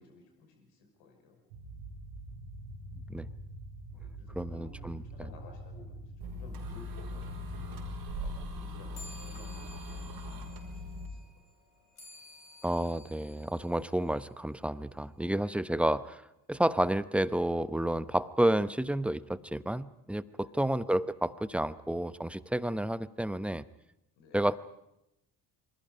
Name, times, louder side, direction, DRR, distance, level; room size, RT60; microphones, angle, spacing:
voice 1, 0.0-1.5 3.9-9.6 9.8-10.1 10.5-11.2 20.4-20.6 24.2-24.5, left 3 dB, 65° left, 3 dB, 5.8 m, -56 dB
sound 1, 1.5-9.5, right 2 dB, 70° right, 5.9 m, -46 dB
voice 2, 4.4-5.0 12.6-16.2 16.5-23.7 24.3-24.6, right 1 dB, 5° right, 17 dB, 0.9 m, -30 dB
sound 2, 6.2-11.1, left 1 dB, 50° right, 5.5 m, -40 dB
sound 3, 8.9-14.8, left 2 dB, 80° left, 3.9 m, -54 dB
27.0 x 25.5 x 5.3 m, 0.86 s
figure-of-eight pair, 45°, 46 cm